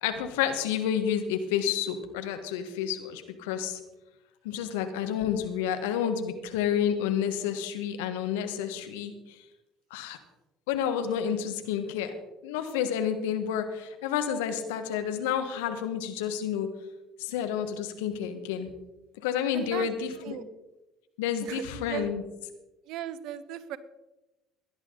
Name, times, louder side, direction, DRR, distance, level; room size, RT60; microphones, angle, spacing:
voice 1, 0.0-3.8 4.4-9.4 9.9-10.2 10.7-12.1 12.4-16.7 17.2-18.7 19.2-20.4 21.2-22.2, left 8 dB, 75° left, 8 dB, 1.5 m, -30 dB
voice 2, 19.5-19.9 20.2-20.4 21.4-22.2 22.9-23.8, right 11 dB, 65° right, 15 dB, 0.9 m, -37 dB
17.0 x 11.0 x 4.0 m, 1.0 s
hypercardioid pair, 60°, 0 cm